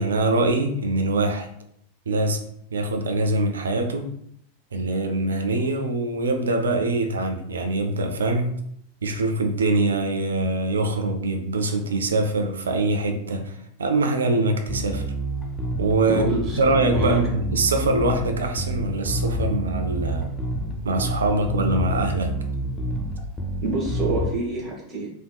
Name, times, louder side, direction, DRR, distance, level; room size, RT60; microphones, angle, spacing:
voice 1, 0.0-1.5 2.1-2.4 2.7-4.1 4.7-8.5 9.0-15.0 15.8-20.3 20.8-22.3, right 2 dB, 70° right, 5 dB, 0.5 m, -23 dB
Bass guitar, 14.7-24.3, equal, 10° left, 0.7 m, -28 dB
voice 2, 16.0-16.6 16.9-17.2 23.6-25.1, right 3 dB, 25° right, -3 dB, 1.2 m, -27 dB
3.7 x 3.4 x 2.3 m, 0.70 s
figure-of-eight pair, 90°, 0 cm